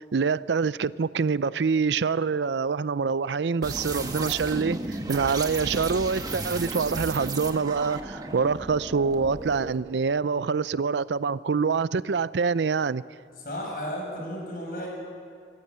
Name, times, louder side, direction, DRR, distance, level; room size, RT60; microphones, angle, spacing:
voice 1, 0.0-4.8 5.1-13.0, right 5 dB, 90° right, 0.5 m, -25 dB
sound 1, 3.6-9.8, right 2 dB, 20° right, 1.4 m, -34 dB
voice 2, 13.4-14.9, equal, 55° left, 7.6 m, -34 dB
29.0 x 15.0 x 8.8 m
head